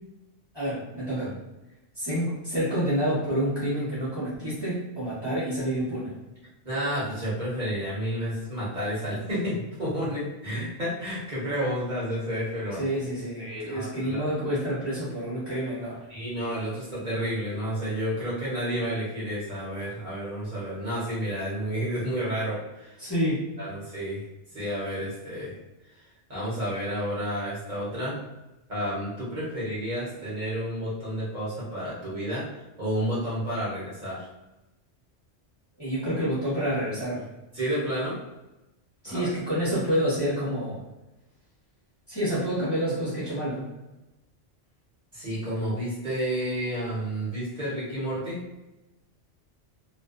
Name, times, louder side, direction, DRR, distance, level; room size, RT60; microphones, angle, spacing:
voice 1, 0.5-1.4 2.0-6.1 12.8-16.1 23.0-23.5 35.8-37.3 39.0-40.8 42.1-43.7, equal, 25° left, -10 dB, 0.9 m, -28 dB
voice 2, 6.6-12.8 13.4-14.3 16.1-23.0 23.6-24.2 24.5-25.6 25.9-26.0 26.3-28.2 28.7-34.3 37.5-38.2 39.0-39.3 45.1-48.4, equal, 45° right, -9 dB, 0.9 m, -31 dB
2.5 x 2.2 x 2.3 m, 1.0 s
omnidirectional pair, 1.2 m